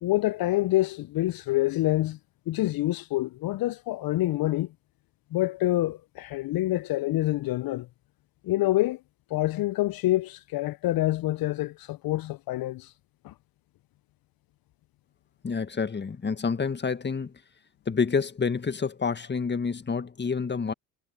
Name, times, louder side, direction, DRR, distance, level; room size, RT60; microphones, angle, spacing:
voice 1, 0.0-2.2 2.5-4.7 5.3-7.9 8.4-9.0 9.3-12.9 13.2-13.3, left 16 dB, 55° left, 1.1 m, -26 dB
voice 2, 15.4-17.3 17.9-20.7, left 5 dB, 25° left, 1.9 m, -28 dB
hypercardioid pair, 55°, 43 cm